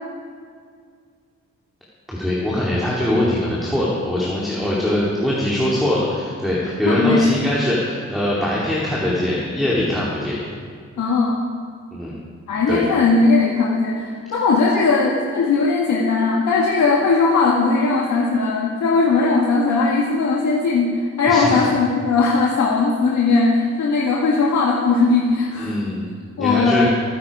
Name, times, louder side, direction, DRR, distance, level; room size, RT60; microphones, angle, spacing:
voice 1, 2.1-10.4 11.9-12.1 12.7-12.8 21.3-21.6 25.5-26.1 26.4-26.9, left 1 dB, ahead, -6 dB, 2.6 m, -22 dB
voice 2, 6.9-7.4 11.0-11.4 12.5-25.8 26.4-26.9, left 3 dB, 75° left, -3 dB, 1.8 m, -18 dB
25.0 x 10.5 x 4.9 m, 2.1 s
wide cardioid pair, 140°, 29 cm